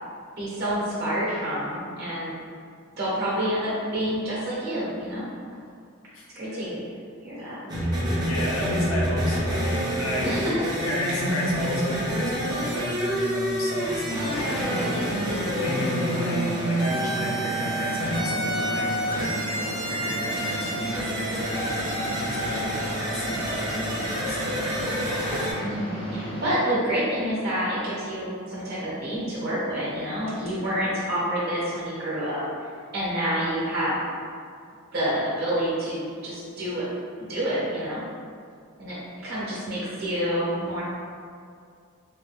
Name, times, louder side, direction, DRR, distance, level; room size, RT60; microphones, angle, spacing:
voice 1, 0.4-2.3 3.0-5.3 6.3-6.8 7.2-7.6 10.2-10.5 14.5-15.1 25.6-34.0 34.9-36.9 37.3-38.0 38.8-39.0 39.2-40.8, equal, 45° right, -8 dB, 0.9 m, -28 dB
voice 2, 6.1-6.6 7.4-7.5 7.9-10.3 10.8-15.2 15.5-24.9, left 1 dB, 65° left, -3 dB, 0.6 m, -33 dB
sound 1, 7.7-25.5, right 1 dB, 20° right, 0.5 m, -28 dB
sound 2, 14.1-26.5, equal, 30° left, 0.8 m, -34 dB
3.3 x 2.2 x 3.1 m, 2.2 s
head